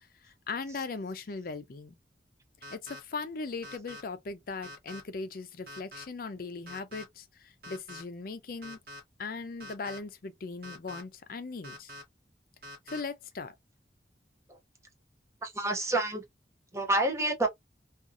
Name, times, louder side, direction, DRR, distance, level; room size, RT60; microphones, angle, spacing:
voice 1, 0.5-2.0 2.7-7.2 7.7-8.8 9.2-11.9 12.9-13.5, left 4 dB, 55° left, 0.5 m, -38 dB
sound 1, 2.6-3.0 3.6-4.0 4.6-5.0 5.7-6.0 6.7-7.0 7.6-8.0 8.6-9.0 9.6-10.0 10.6-11.0 11.6-12.0 12.6-13.0, left 1 dB, 55° right, 1.1 m, -45 dB
voice 2, 15.4-16.2 16.7-17.5, right 2 dB, 15° right, 0.7 m, -28 dB
2.6 x 2.4 x 2.4 m
head